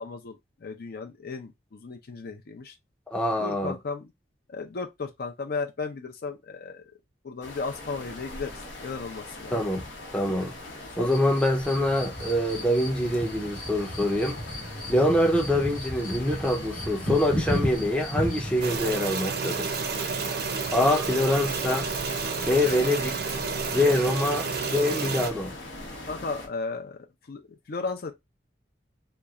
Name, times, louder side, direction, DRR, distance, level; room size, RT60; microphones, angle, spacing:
voice 1, 0.0-2.7 3.4-4.1 4.5-6.8 7.2-9.6 11.0-11.3 26.1-27.4 27.7-28.1, left 4 dB, 55° left, 0.5 m, -35 dB
voice 2, 3.1-3.7 9.5-9.9 10.1-10.5 11.0-14.4 14.9-19.7 20.7-21.9 22.5-23.2 23.7-25.5, left 1 dB, 5° left, 0.5 m, -25 dB
sound 1, 7.4-26.5, left 2 dB, 85° left, 1.0 m, -41 dB
sound 2, 11.1-18.6, equal, 25° left, 1.0 m, -34 dB
sound 3, 18.6-25.3, right 5 dB, 55° right, 0.5 m, -30 dB
3.0 x 2.3 x 2.4 m
head